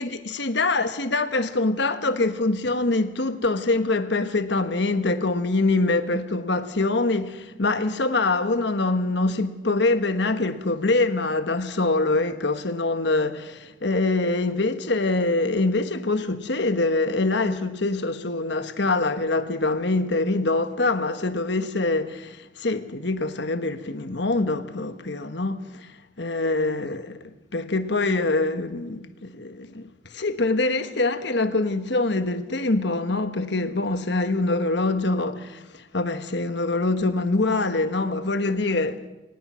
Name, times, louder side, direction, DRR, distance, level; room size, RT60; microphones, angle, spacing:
voice 1, 0.0-25.9 26.2-27.2 27.5-39.1, left 2 dB, 55° left, 1.3 m, -24 dB
22.5 x 19.0 x 6.3 m
head